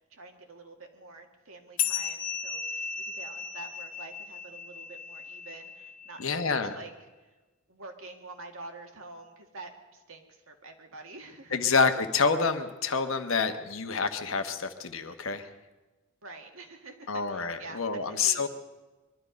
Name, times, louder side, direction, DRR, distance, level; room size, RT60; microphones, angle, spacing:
voice 1, 0.0-6.9 7.7-11.7 16.2-18.5, right 3 dB, 75° right, 3 dB, 2.0 m, -47 dB
sound 1, 1.8-6.7, left 7 dB, 40° left, 1.0 m, -36 dB
voice 2, 6.2-6.8 11.5-15.5 17.1-18.5, left 5 dB, 70° left, 8 dB, 1.2 m, -27 dB
22.5 x 12.5 x 5.2 m, 1.2 s
head